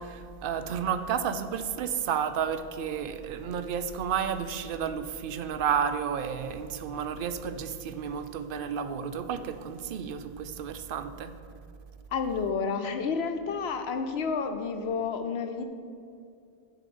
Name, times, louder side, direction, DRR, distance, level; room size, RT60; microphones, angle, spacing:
voice 1, 0.0-11.3, right 7 dB, 65° right, 10 dB, 0.7 m, -31 dB
voice 2, 12.1-15.6, left 5 dB, 80° left, 7 dB, 1.0 m, -30 dB
7.2 x 4.9 x 6.8 m, 2.4 s
omnidirectional pair, 1.0 m